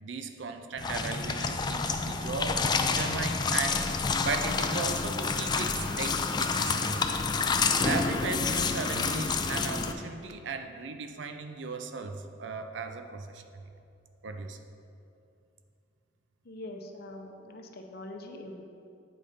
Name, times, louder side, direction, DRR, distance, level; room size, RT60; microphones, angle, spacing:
voice 1, 0.0-7.1 7.8-13.6 14.2-14.6, right 4 dB, 75° right, 7 dB, 0.5 m, -36 dB
sound 1, 0.8-9.9, left 4 dB, 25° left, 0.3 m, -29 dB
voice 2, 16.4-18.6, left 1 dB, 55° left, 3 dB, 0.7 m, -43 dB
8.6 x 4.0 x 5.0 m, 2.6 s
head